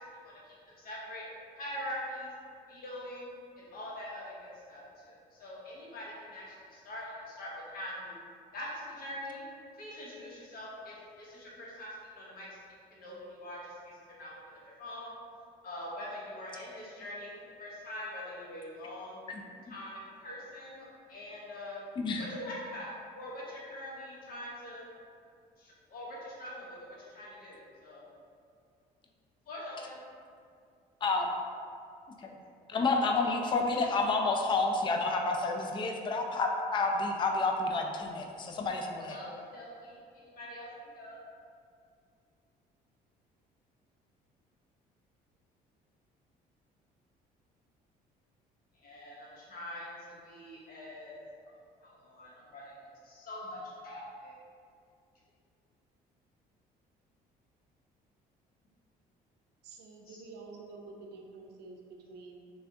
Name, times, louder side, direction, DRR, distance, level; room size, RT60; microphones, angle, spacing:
voice 1, 0.2-1.3 1.6-2.3 2.7-4.4 4.7-6.4 6.7-8.2 8.5-9.5 9.8-12.5 12.9-15.2 15.6-17.3 17.6-19.3 19.7-21.8 22.2-24.8 25.6-28.0 29.5-30.0 39.1-40.0 40.4-41.2 48.8-50.0 50.2-51.2 51.8-54.3 60.0-60.2, left 1 dB, 60° left, -5 dB, 1.1 m, -43 dB
voice 2, 22.0-22.3 31.0-31.3 32.2-32.3 32.7-39.2, left 3 dB, 30° left, 2 dB, 0.4 m, -29 dB
voice 3, 59.6-62.5, right 3 dB, 85° right, 1 dB, 0.5 m, -49 dB
3.3 x 3.3 x 2.7 m, 2.3 s
cardioid pair, 110°, 17 cm